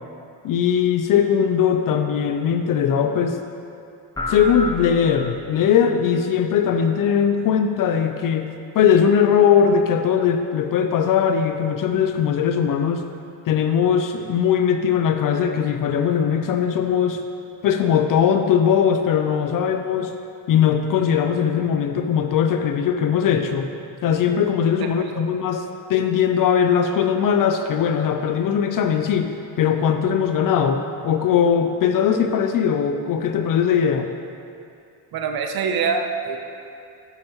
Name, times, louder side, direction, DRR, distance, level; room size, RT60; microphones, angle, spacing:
voice 1, 0.4-3.4 4.3-13.0 13.5-17.2 17.6-20.2 20.5-23.7 24.0-34.1, left 7 dB, 45° left, 7 dB, 0.4 m, -20 dB
sound 1, 4.2-5.7, left 1 dB, 5° left, 1.0 m, -30 dB
voice 2, 24.8-25.3 35.1-36.4, right 5 dB, 45° right, 5 dB, 0.7 m, -25 dB
11.0 x 5.2 x 3.0 m, 2.6 s
supercardioid pair, 95°, 50 cm